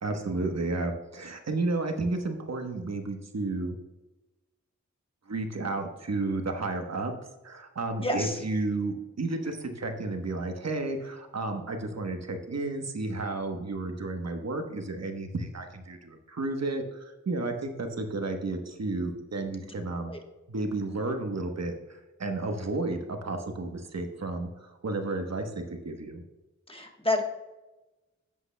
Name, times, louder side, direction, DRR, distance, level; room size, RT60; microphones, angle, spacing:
voice 1, 0.0-3.7 5.3-7.1 7.4-20.1 20.5-26.2, right 2 dB, 60° right, 5 dB, 1.1 m, -32 dB
voice 2, 8.0-8.4 20.1-20.2 26.7-27.2, left 2 dB, 20° left, 3 dB, 1.2 m, -29 dB
11.0 x 8.5 x 2.2 m, 1.1 s
wide cardioid pair, 70°, 29 cm